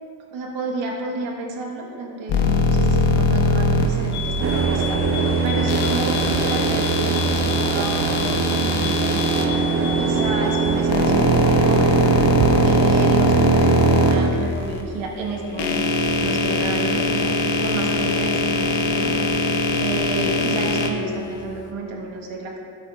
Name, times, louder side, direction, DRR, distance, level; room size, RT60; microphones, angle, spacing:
voice 1, 0.3-9.4 10.0-12.2 12.6-17.3 17.6-19.1 19.7-22.6, right 3 dB, 80° right, -1 dB, 1.6 m, -31 dB
sound 1, 2.3-4.7 5.7-9.5 10.5-14.8 15.4-20.9, left 1 dB, 65° left, 1.1 m, -21 dB
sound 2, 4.1-10.9, left 8 dB, 40° left, 0.7 m, -33 dB
sound 3, 4.4-14.3, right 4 dB, 30° right, 0.5 m, -21 dB
13.5 x 7.2 x 2.5 m, 2.5 s
cardioid pair, 95°, 46 cm